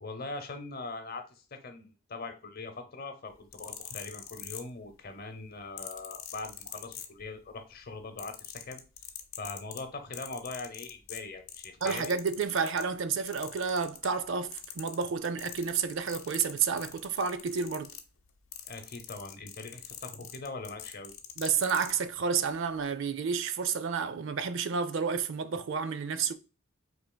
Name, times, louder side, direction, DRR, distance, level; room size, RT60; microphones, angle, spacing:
voice 1, 0.0-8.8 9.4-12.1 18.7-21.1, left 3 dB, 45° left, 0.8 m, -41 dB
sound 1, 3.3-5.1 5.8-7.5 7.8-12.9 13.3-14.3 14.5-21.9 22.7-22.8, left 10 dB, 75° left, 0.7 m, -43 dB
voice 2, 11.8-17.9 21.4-26.3, right 6 dB, 60° right, 0.4 m, -30 dB
5.6 x 4.0 x 2.2 m
head